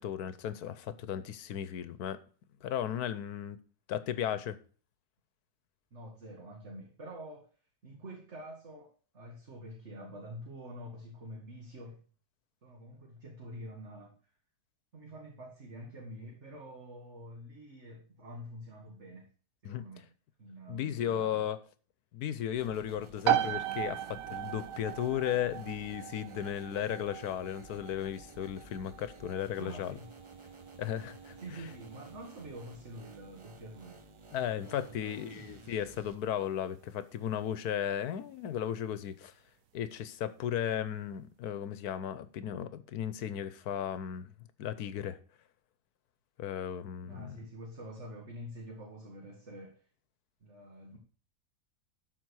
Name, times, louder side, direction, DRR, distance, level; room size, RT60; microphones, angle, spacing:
voice 1, 0.0-2.2 2.6-3.6 3.9-4.6 19.6-19.9 20.7-21.6 22.1-30.0 30.8-31.3 34.3-39.3 39.7-44.3 44.6-45.2 46.4-47.4, left 10 dB, 85° left, 1.3 m, -35 dB
voice 2, 5.9-7.5 7.8-12.0 12.6-14.2 14.9-19.3 19.6-20.1 20.4-21.5 29.6-30.1 30.4-30.5 31.4-34.0 34.6-35.4 47.0-49.9 50.4-51.0, right 1 dB, 50° right, 2.0 m, -47 dB
sound 1, 22.5-36.1, right 3 dB, 25° right, 0.8 m, -53 dB
sound 2, 23.2-37.7, right 12 dB, 70° right, 1.0 m, -38 dB
12.0 x 4.4 x 6.2 m
omnidirectional pair, 1.6 m